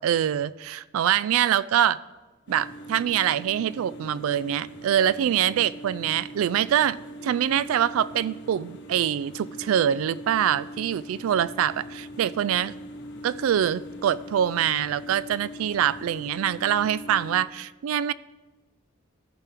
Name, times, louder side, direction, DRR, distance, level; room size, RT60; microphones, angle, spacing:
voice 1, 0.0-2.0 2.5-7.0 7.2-12.7 13.2-18.1, right 10 dB, 80° right, 19 dB, 0.3 m, -24 dB
sound 1, 2.5-17.4, equal, 60° left, 1.1 m, -41 dB
14.0 x 5.8 x 3.5 m, 1.2 s
head